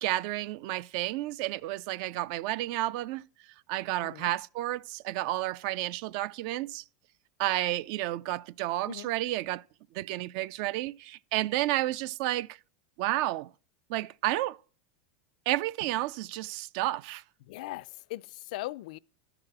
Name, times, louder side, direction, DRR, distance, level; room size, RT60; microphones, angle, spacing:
voice 1, 0.0-3.2 3.7-6.8 7.4-9.6 9.9-12.6 13.0-13.5 13.9-14.6 15.5-17.2, right 16 dB, 50° right, 0.3 m, -31 dB
voice 2, 17.5-19.0, left 18 dB, 65° left, 0.3 m, -39 dB
11.5 x 4.9 x 5.9 m
supercardioid pair, 160°, 5 cm